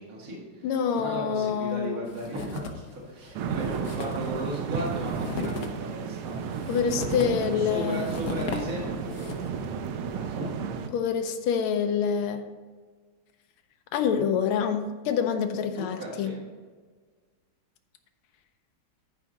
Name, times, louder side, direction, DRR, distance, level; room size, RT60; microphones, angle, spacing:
voice 1, 0.0-6.4 7.2-10.5 15.7-16.4, right 1 dB, 40° right, -4 dB, 2.2 m, -36 dB
voice 2, 0.6-2.0 6.7-8.0 10.9-12.4 13.9-16.3, left 7 dB, 85° left, 6 dB, 1.6 m, -26 dB
sound 1, 2.1-2.9 3.2-3.3 3.6-9.6, left 4 dB, 55° left, 1.1 m, -37 dB
sound 2, 3.3-10.9, right 6 dB, 85° right, 1.6 m, -33 dB
11.0 x 4.7 x 5.2 m, 1.5 s
omnidirectional pair, 2.3 m